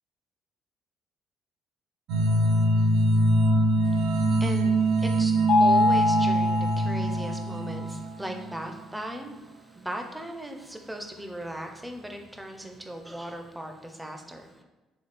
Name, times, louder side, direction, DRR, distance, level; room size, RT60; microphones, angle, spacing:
sound 1, 2.1-8.7, right 1 dB, 75° right, 0.5 m, -24 dB
voice 1, 3.8-14.6, right 1 dB, 5° right, 4 dB, 0.5 m, -38 dB
Mallet percussion, 5.5-7.5, left 3 dB, 70° left, 0.7 m, -23 dB
4.1 x 3.1 x 3.4 m, 1.1 s
cardioid pair, 110°, 0 cm